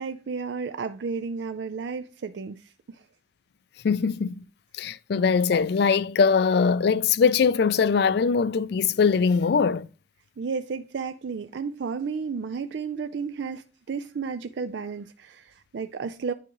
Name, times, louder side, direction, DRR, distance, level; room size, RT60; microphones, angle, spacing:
voice 1, 0.0-2.6 2.9-3.0 10.4-16.3, right 5 dB, 70° right, 0.4 m, -32 dB
voice 2, 3.8-4.3 4.8-9.9, left 5 dB, 60° left, 0.4 m, -21 dB
9.9 x 4.9 x 3.0 m
head